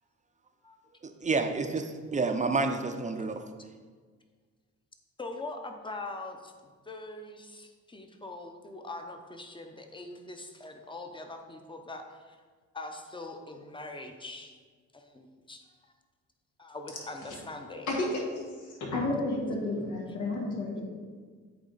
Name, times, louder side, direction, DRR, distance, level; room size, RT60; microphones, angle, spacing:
voice 1, 1.0-3.4, right 3 dB, 25° right, 6 dB, 0.5 m, -29 dB
voice 2, 5.2-12.4 12.7-14.6 14.9-15.9 16.6-17.9, left 2 dB, 15° left, 5 dB, 0.8 m, -42 dB
voice 3, 17.9-20.8, left 2 dB, 80° left, -1 dB, 1.7 m, -31 dB
8.6 x 3.6 x 4.0 m, 1.6 s
cardioid pair, 90°, 30 cm